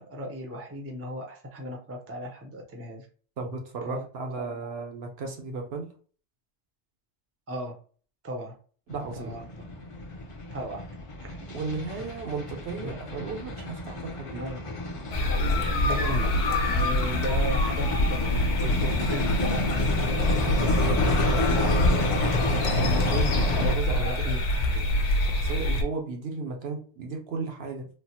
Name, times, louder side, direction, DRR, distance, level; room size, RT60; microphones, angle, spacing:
voice 1, 0.0-3.1 3.8-4.0 4.4-4.8 7.5-7.7 8.2-8.5 9.2-9.7 10.5-10.8 11.2-11.5 13.2-13.3 14.4-14.6 15.3-16.3 16.6-22.0 22.3-22.5 23.5-24.4 24.7-24.9, equal, 20° right, 0.4 m, -37 dB
voice 2, 3.4-5.9 8.9-9.4 11.5-14.4 20.3-21.6 22.3-24.3 25.2-27.9, right 4 dB, 65° right, 0.9 m, -35 dB
sound 1, 8.9-23.7, left 2 dB, 40° left, 0.4 m, -30 dB
sound 2, 15.1-25.8, left 1 dB, 60° left, 0.8 m, -25 dB
3.3 x 2.0 x 2.8 m
omnidirectional pair, 1.2 m